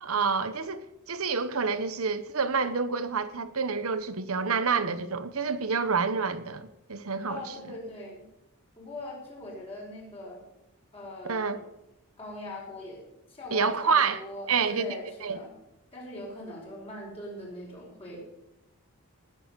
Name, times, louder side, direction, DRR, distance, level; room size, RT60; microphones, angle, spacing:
voice 1, 0.0-7.4 11.2-11.6 13.5-14.2 14.5-14.9 15.2-15.4, right 5 dB, 70° right, 1.0 m, -28 dB
voice 2, 7.3-8.3 8.8-10.4 10.9-11.7 12.2-15.5 15.9-18.2, left 1 dB, 25° left, 4.9 m, -41 dB
19.0 x 7.8 x 6.8 m
head